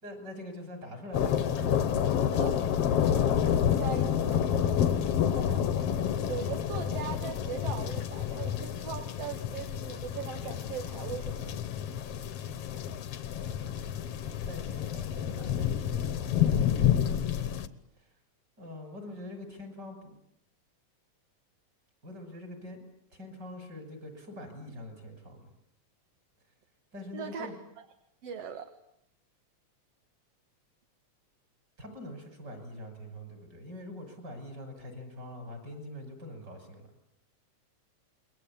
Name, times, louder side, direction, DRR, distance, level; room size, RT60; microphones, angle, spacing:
voice 1, 0.0-1.7 14.4-18.1 18.6-20.2 22.0-25.5 26.9-27.5 31.8-36.9, left 1 dB, 35° right, 6 dB, 6.5 m, -44 dB
sound 1, 1.1-17.7, left 9 dB, 60° left, 2.0 m, -29 dB
voice 2, 3.0-3.3 3.6-4.5 5.3-5.7 6.3-11.6 27.1-27.5 28.2-28.7, right 8 dB, 60° right, 7 dB, 2.4 m, -40 dB
28.5 x 22.5 x 8.7 m, 0.74 s
omnidirectional pair, 3.3 m